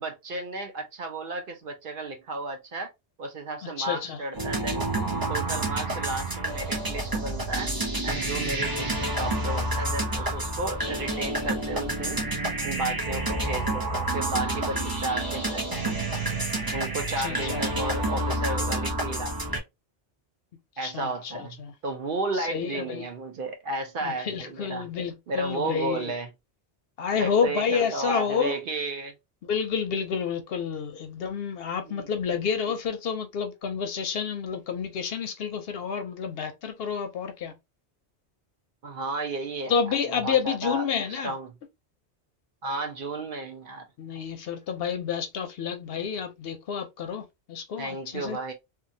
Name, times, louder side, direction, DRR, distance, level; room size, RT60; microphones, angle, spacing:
voice 1, 0.0-2.9 3.2-4.9 5.3-7.7 8.0-12.2 12.6-15.9 16.7-19.6 20.8-24.8 25.3-26.3 27.2-29.1 31.8-32.1 38.8-40.8 41.1-41.5 42.6-43.8 47.8-48.5, right 2 dB, 55° right, 0.8 m, -33 dB
voice 2, 3.8-4.2 17.2-17.8 20.8-21.7 22.3-23.0 24.0-26.1 27.0-28.6 29.4-37.5 39.7-41.3 44.0-48.4, left 6 dB, 65° left, 0.7 m, -29 dB
sound 1, 4.3-19.6, right 2 dB, 25° right, 0.6 m, -29 dB
2.9 x 2.3 x 2.6 m
omnidirectional pair, 1.2 m